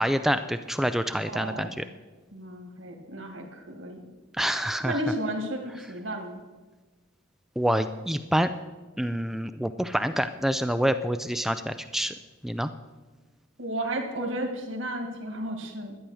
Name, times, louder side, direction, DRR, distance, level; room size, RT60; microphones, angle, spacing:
voice 1, 0.0-1.8 4.4-5.0 7.6-8.5 9.0-12.1 12.4-12.7, equal, ahead, 10 dB, 0.3 m, -27 dB
voice 2, 1.3-1.8 2.3-4.0 4.8-6.4 13.6-16.0, right 1 dB, 65° right, 3 dB, 1.9 m, -33 dB
12.0 x 10.0 x 6.3 m, 1.2 s
head